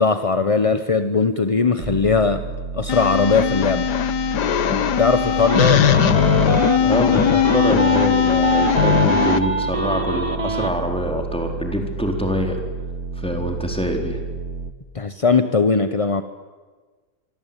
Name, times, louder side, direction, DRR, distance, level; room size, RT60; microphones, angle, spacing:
voice 1, 0.0-2.4 2.7-3.9 5.0-6.0 14.9-16.2, left 4 dB, 30° left, 10 dB, 0.7 m, -19 dB
sound 1, 1.8-14.7, right 5 dB, 45° right, 1.6 m, -31 dB
sound 2, 2.9-9.4, left 9 dB, 75° left, 1.6 m, -19 dB
sound 3, 5.4-6.8 7.1-10.7, right 3 dB, 20° right, 1.1 m, -24 dB
voice 2, 6.8-12.6 13.2-14.2, equal, 5° left, 2 dB, 4.4 m, -24 dB
25.5 x 24.5 x 9.1 m, 1.4 s
omnidirectional pair, 1.8 m